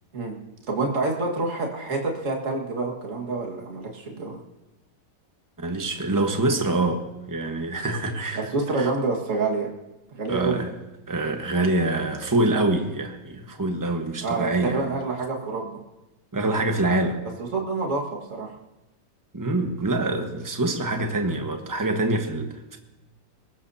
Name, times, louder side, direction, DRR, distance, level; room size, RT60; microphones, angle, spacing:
voice 1, 0.7-4.4 8.3-9.7 10.1-10.6 14.2-15.8 17.5-18.0 18.3-18.5, right 3 dB, 45° right, 0 dB, 2.1 m, -27 dB
voice 2, 5.6-8.5 8.7-8.9 10.3-10.7 11.1-14.9 16.3-17.2 19.3-22.8, right 2 dB, 10° right, 4 dB, 1.1 m, -25 dB
22.5 x 19.5 x 2.8 m, 1.0 s
omnidirectional pair, 1.9 m